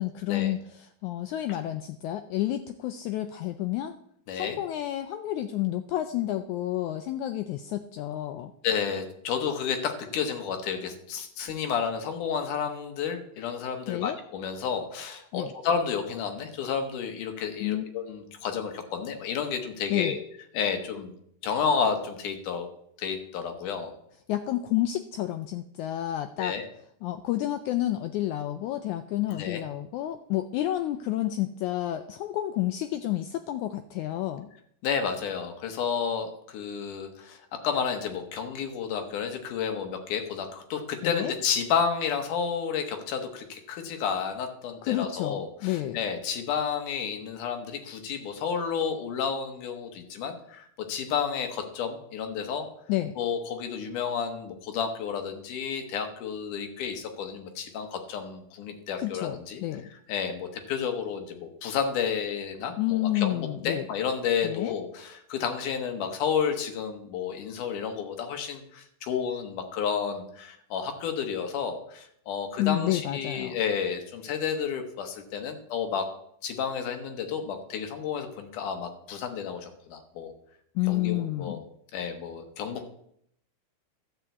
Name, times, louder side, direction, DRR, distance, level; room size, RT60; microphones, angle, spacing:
voice 1, 0.0-4.0 4.3-8.5 13.9-14.1 15.3-15.5 17.6-17.9 19.9-20.2 24.3-26.6 27.0-34.5 41.0-41.3 44.8-46.0 52.9-53.2 59.0-59.9 62.8-63.9 64.4-64.8 72.6-73.6 80.7-81.6, left 14 dB, 90° left, 9 dB, 1.7 m, -30 dB
voice 2, 8.6-20.2 20.5-21.1 21.4-22.7 23.0-23.9 26.4-26.6 29.3-29.6 34.8-52.7 53.2-59.6 60.1-76.1 76.4-80.3 80.9-81.6 81.9-82.9, left 7 dB, 70° left, 6 dB, 2.6 m, -31 dB
12.0 x 4.6 x 8.3 m, 0.70 s
omnidirectional pair, 4.0 m